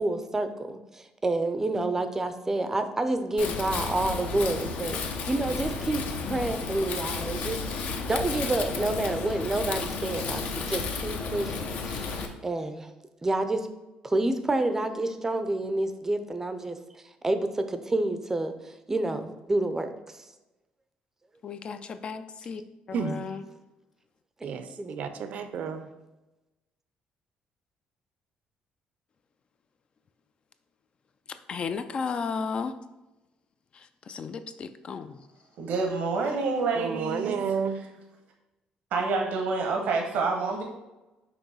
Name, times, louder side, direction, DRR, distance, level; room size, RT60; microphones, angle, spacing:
voice 1, 0.0-6.0 6.3-12.9 13.2-13.7 14.0-16.8 17.2-19.9 24.4-25.0, right 2 dB, 15° right, 0.5 m, -29 dB
Wind, 3.4-12.3, left 4 dB, 65° left, 0.7 m, -32 dB
voice 2, 21.4-22.6 22.9-23.4 31.5-32.7 33.7-35.2, left 5 dB, 40° left, 0.3 m, -34 dB
voice 3, 22.9-23.2 24.4-25.9 36.7-37.8, right 6 dB, 60° right, 0.6 m, -31 dB
voice 4, 35.6-37.3 38.9-40.6, right 4 dB, 75° right, 0.9 m, -27 dB
6.0 x 3.0 x 5.5 m
cardioid pair, 130°, 3 cm